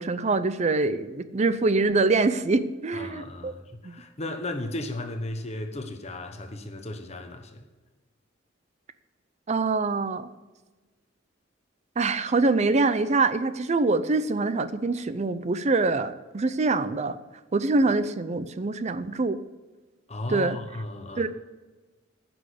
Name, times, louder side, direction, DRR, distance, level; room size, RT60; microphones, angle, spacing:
voice 1, 0.0-3.5 3.8-3.9 9.5-10.3 12.0-17.2 17.5-19.4 20.3-20.6 21.2-21.3, right 3 dB, 35° right, 0.5 m, -24 dB
voice 2, 2.9-7.7 20.1-21.3, left 1 dB, 35° left, 1.1 m, -35 dB
10.0 x 6.2 x 8.3 m
head